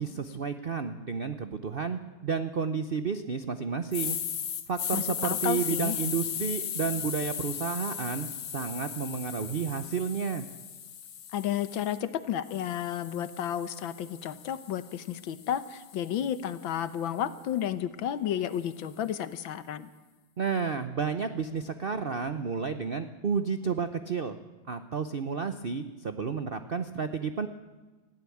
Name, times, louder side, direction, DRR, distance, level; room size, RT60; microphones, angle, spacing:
voice 1, 0.0-4.2 4.7-10.4 20.4-24.4 24.7-27.5, right 5 dB, 75° right, 10 dB, 0.5 m, -31 dB
sound 1, 3.9-12.0 12.5-16.7, left 8 dB, 55° left, 1.5 m, -37 dB
voice 2, 4.9-6.0 11.3-19.9, left 10 dB, 75° left, 13 dB, 1.7 m, -32 dB
20.0 x 15.0 x 8.5 m, 1.3 s
omnidirectional pair, 2.2 m